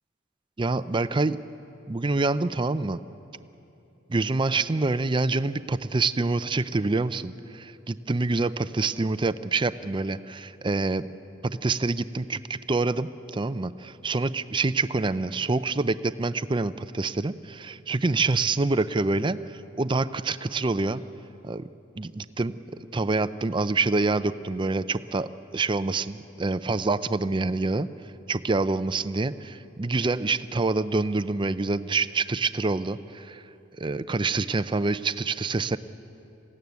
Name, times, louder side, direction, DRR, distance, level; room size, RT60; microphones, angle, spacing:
voice 1, 0.6-1.4 1.9-3.0 4.1-11.1 11.4-21.0 21.4-21.6 22.0-22.6 22.9-27.9 28.3-33.4 33.8-35.8, right 3 dB, 25° right, 13 dB, 0.5 m, -26 dB
21.5 x 16.0 x 9.5 m, 2.8 s
head